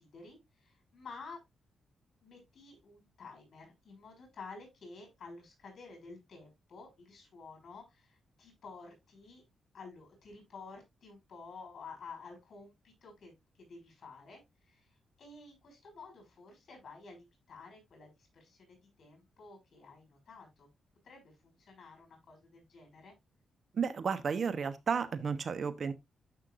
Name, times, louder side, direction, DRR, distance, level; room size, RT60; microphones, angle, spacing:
voice 1, 0.0-1.4 2.2-9.4 9.7-14.9 15.2-20.7 21.0-23.1, left 4 dB, 60° left, 6.1 m, -51 dB
voice 2, 23.7-25.9, right 6 dB, 55° right, 1.0 m, -32 dB
11.5 x 5.8 x 2.5 m
cardioid pair, 90°, 0 cm